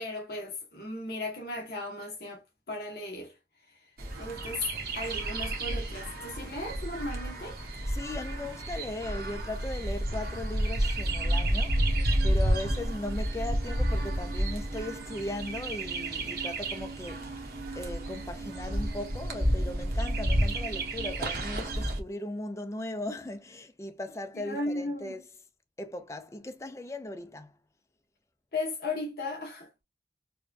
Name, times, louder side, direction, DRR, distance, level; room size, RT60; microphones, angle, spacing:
voice 1, 0.0-3.4 3.7-3.9 4.2-4.7 4.9-7.6 24.3-25.1 28.5-29.8, left 2 dB, 60° left, 0.9 m, -36 dB
sound 1, 4.0-7.2 8.9-9.0 9.3-9.5 9.9-10.0 10.5-21.9, right 4 dB, 40° right, 0.4 m, -46 dB
Chirp tweet, 4.0-22.0, right 1 dB, 55° right, 1.0 m, -31 dB
voice 2, 7.9-17.5 17.7-25.2 25.8-27.5, left 1 dB, 15° left, 0.5 m, -38 dB
4.5 x 2.2 x 2.6 m
head